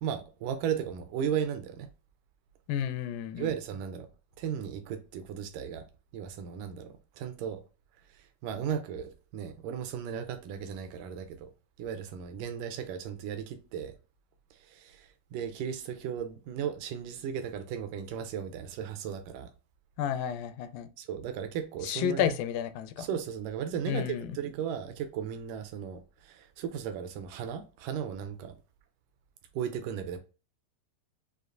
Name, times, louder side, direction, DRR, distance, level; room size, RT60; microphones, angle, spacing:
voice 1, 0.0-1.9 3.4-4.1 4.4-5.8 6.1-7.6 8.1-11.5 11.8-13.9 14.5-19.5 21.0-22.3 23.0-28.6 29.5-30.2, right 8 dB, 80° right, 2.0 m, -36 dB
voice 2, 2.7-3.5 20.0-20.9 21.8-23.1 23.9-24.4, left 9 dB, 80° left, 2.2 m, -31 dB
6.4 x 2.4 x 2.4 m
omnidirectional pair, 4.1 m